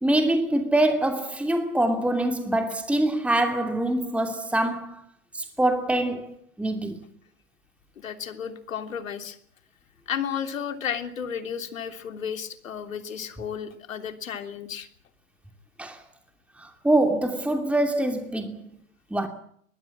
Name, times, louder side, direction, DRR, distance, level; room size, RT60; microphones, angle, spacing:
voice 1, 0.0-5.0 5.3-7.0 15.8-16.0 16.6-18.7 19.1-19.3, right 1 dB, 5° right, 2.6 m, -24 dB
voice 2, 8.0-9.4 10.1-14.9, left 8 dB, 80° left, 3.3 m, -33 dB
24.0 x 20.0 x 8.7 m
hypercardioid pair, 100°, 39 cm